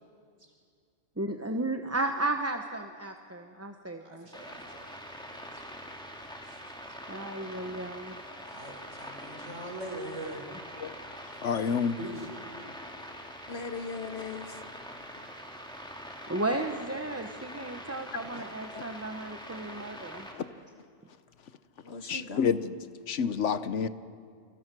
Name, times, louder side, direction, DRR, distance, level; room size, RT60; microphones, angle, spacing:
voice 1, 1.2-4.3 7.1-8.1 16.3-20.3, right 2 dB, 15° right, 0.9 m, -34 dB
voice 2, 4.0-4.9 5.3-5.6 6.4-6.6 8.5-10.5 11.2-11.4 12.0-12.3, right 1 dB, 85° right, 4.7 m, -42 dB
sound 1, 4.3-20.3, equal, 5° left, 2.6 m, -44 dB
voice 3, 11.4-12.0 18.7-18.8 20.3-20.4 22.1-22.6 23.1-23.9, left 6 dB, 75° left, 1.2 m, -28 dB
voice 4, 13.5-14.6 21.8-22.7, left 4 dB, 60° left, 1.8 m, -39 dB
30.0 x 25.5 x 6.2 m
omnidirectional pair, 1.2 m